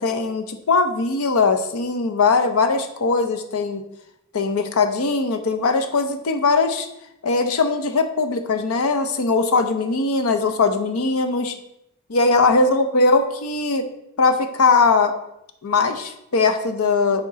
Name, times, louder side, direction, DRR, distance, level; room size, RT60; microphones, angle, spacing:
voice 1, 0.0-3.8 4.3-6.9 7.2-11.5 12.1-13.8 14.2-15.1 15.6-17.2, left 4 dB, 80° left, 8 dB, 0.6 m, -20 dB
7.4 x 5.0 x 4.0 m, 0.83 s
head